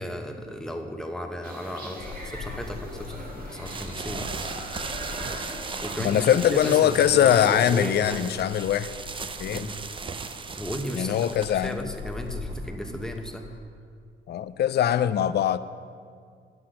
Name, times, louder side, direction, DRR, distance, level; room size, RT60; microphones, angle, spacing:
voice 1, 0.0-4.8 5.8-8.3 9.5-9.7 10.6-11.2 11.5-13.4, equal, 5° left, 3 dB, 0.9 m, -35 dB
sound 1, 1.4-8.0, right 1 dB, 45° right, 1.7 m, -40 dB
sound 2, 2.0-13.6, left 4 dB, 75° left, 0.9 m, -43 dB
sound 3, 3.7-13.2, right 5 dB, 25° right, 0.5 m, -38 dB
voice 2, 6.0-8.9 9.4-9.7 10.9-11.9 14.3-15.6, left 10 dB, 55° left, 14 dB, 0.5 m, -22 dB
9.5 x 6.1 x 6.4 m, 2.1 s
cardioid pair, 90°, 20 cm